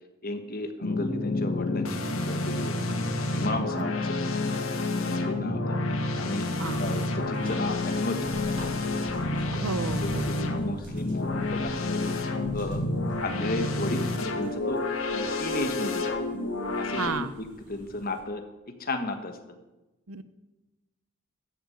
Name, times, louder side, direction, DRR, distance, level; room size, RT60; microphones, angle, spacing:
voice 1, 0.2-2.9 3.3-5.8 6.2-6.5 6.8-8.2 8.5-9.6 10.0-12.1 12.5-12.8 13.2-14.8 15.1-16.2 16.8-17.3 17.7-18.4 18.8-19.3, left 2 dB, 40° left, 7 dB, 1.4 m, -34 dB
sound 1, 0.8-17.1, left 2 dB, 70° left, 1.5 m, -29 dB
sound 2, 6.5-18.2, equal, 55° right, 3.8 m, -47 dB
voice 2, 9.5-10.3 17.0-17.3 20.1-20.2, right 4 dB, 90° right, 13 dB, 0.9 m, -32 dB
13.5 x 8.0 x 8.0 m, 1.0 s
head